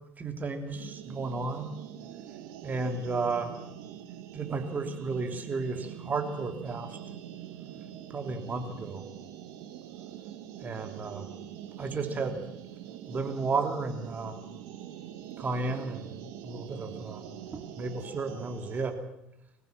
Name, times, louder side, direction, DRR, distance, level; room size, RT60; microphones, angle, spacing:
voice 1, 0.2-1.8 2.6-3.5 4.3-7.0 8.1-9.1 10.6-11.3 11.8-12.4 13.1-14.3 15.4-16.1 16.4-19.0, right 3 dB, 30° right, 5 dB, 3.1 m, -33 dB
sound 1, 0.7-18.9, right 10 dB, 65° right, 2.2 m, -44 dB
24.0 x 15.5 x 7.5 m, 0.85 s
figure-of-eight pair, 65°, 6 cm